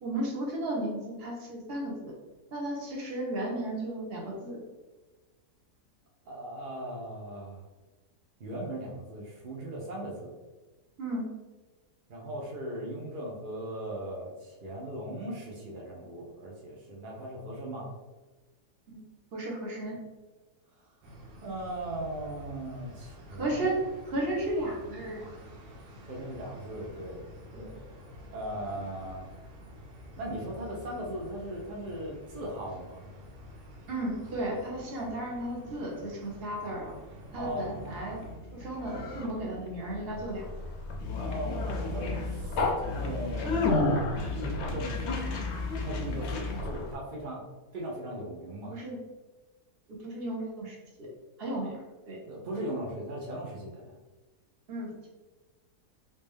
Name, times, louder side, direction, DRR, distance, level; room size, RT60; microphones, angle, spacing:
voice 1, 0.0-2.1 2.5-4.6 11.0-11.3 18.9-20.0 23.3-23.8 24.1-25.4 27.6-27.7 33.9-36.9 37.3-38.2 38.5-40.7 48.7-49.0 49.9-51.1 51.4-51.8 52.1-52.2 54.7-55.1, right 1 dB, 50° right, -2 dB, 0.8 m, -34 dB
voice 2, 6.3-7.6 8.4-10.3 12.1-17.9 21.4-23.7 26.0-27.2 27.5-27.8 28.3-29.3 30.2-33.0 37.4-37.8 41.3-42.6 42.9-45.4 45.8-47.4 47.7-48.7 52.3-53.9, right 1 dB, 65° right, -2 dB, 0.5 m, -38 dB
sound 1, 21.0-38.4, equal, 85° right, 1.3 m, -49 dB
Conversation, 37.5-46.9, left 2 dB, 65° left, 0.7 m, -32 dB
3.3 x 2.8 x 3.3 m, 1.2 s
omnidirectional pair, 1.7 m